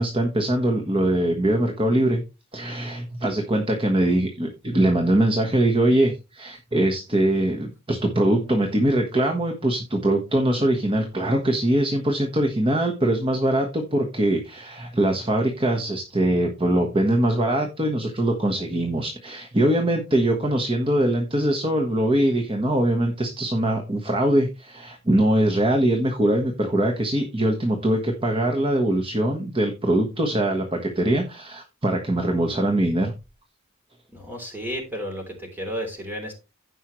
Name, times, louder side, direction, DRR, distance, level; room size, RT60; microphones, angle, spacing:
voice 1, 0.0-2.2 2.5-33.1, right 1 dB, 25° right, 2 dB, 1.3 m, -22 dB
voice 2, 34.1-36.3, equal, 10° right, 2 dB, 3.3 m, -32 dB
16.0 x 5.5 x 3.2 m, 0.27 s
head